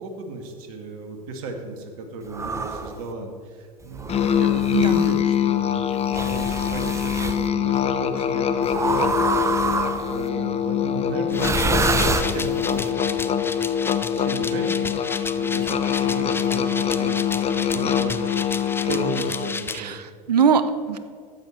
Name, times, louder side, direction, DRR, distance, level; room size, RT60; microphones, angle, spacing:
voice 1, 0.0-9.2 9.6-13.2 14.1-18.4 18.9-19.9, right 3 dB, 65° right, 4 dB, 1.8 m, -34 dB
sound 1, 2.3-3.0 3.9-5.1 6.1-7.4 8.7-10.2 11.3-12.8, right 3 dB, 15° right, 0.9 m, -26 dB
Musical instrument, 4.1-19.6, left 9 dB, 30° left, 0.8 m, -24 dB
voice 2, 4.7-5.0 19.7-21.0, right 6 dB, 85° right, 11 dB, 0.8 m, -22 dB
sound 2, 11.3-19.8, left 4 dB, 10° left, 0.5 m, -33 dB
12.5 x 8.6 x 4.3 m, 2.1 s
hypercardioid pair, 85°, 20 cm